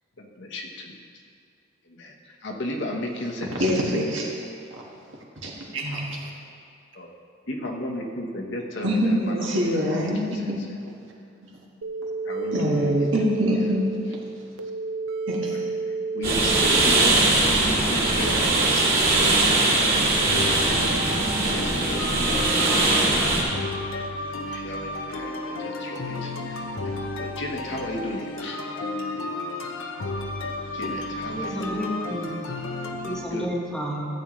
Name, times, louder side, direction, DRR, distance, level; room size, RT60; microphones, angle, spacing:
voice 1, 0.2-1.0 1.9-3.7 6.9-7.1 7.5-10.5 12.2-13.1 16.1-17.2 17.6-23.7 24.0-24.1 24.5-28.6 30.7-31.7 33.3-33.5, left 1 dB, 60° left, 0 dB, 1.1 m, -35 dB
voice 2, 3.5-4.3 4.8-4.9 5.4-6.3 8.8-10.6 11.4-11.6 12.5-13.9 15.3-15.7, equal, 65° right, -3 dB, 1.7 m, -25 dB
sound 1, 11.8-17.4, right 4 dB, 85° right, 0.6 m, -31 dB
sound 2, 16.2-23.4, right 2 dB, 45° right, 2.6 m, -21 dB
sound 3, 20.3-33.2, left 2 dB, 80° left, 0.8 m, -32 dB
voice 3, 31.3-32.4 33.0-34.1, equal, 5° left, -4 dB, 1.4 m, -31 dB
14.5 x 7.9 x 3.2 m, 2.3 s
head